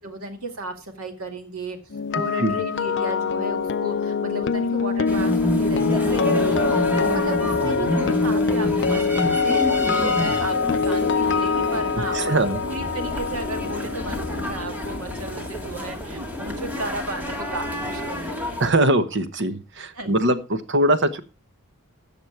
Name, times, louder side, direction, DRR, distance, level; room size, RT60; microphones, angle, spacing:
voice 1, 0.0-1.8 2.1-18.3 19.9-20.2, right 1 dB, 80° right, 5 dB, 2.2 m, -34 dB
sound 1, 1.9-16.0 16.2-16.5, left 5 dB, 55° left, 0.5 m, -24 dB
sound 2, 5.1-18.7, equal, 10° right, 1.9 m, -29 dB
voice 2, 11.9-12.6 18.6-21.2, right 1 dB, 55° right, 11 dB, 1.1 m, -22 dB
14.0 x 7.2 x 4.6 m, 0.31 s
head